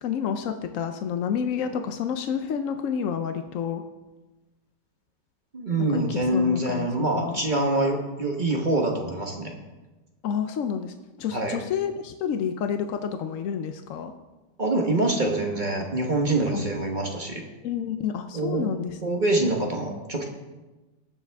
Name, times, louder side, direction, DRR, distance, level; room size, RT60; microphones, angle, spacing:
voice 1, 0.0-3.8 5.9-7.4 10.2-14.1 16.5-16.6 17.6-19.1, left 7 dB, 70° left, 7 dB, 0.8 m, -29 dB
voice 2, 5.5-9.5 11.3-11.6 14.6-17.5 18.3-18.7 19.0-20.3, right 2 dB, 30° right, 1 dB, 1.1 m, -25 dB
19.5 x 7.2 x 3.5 m, 1.1 s
omnidirectional pair, 2.0 m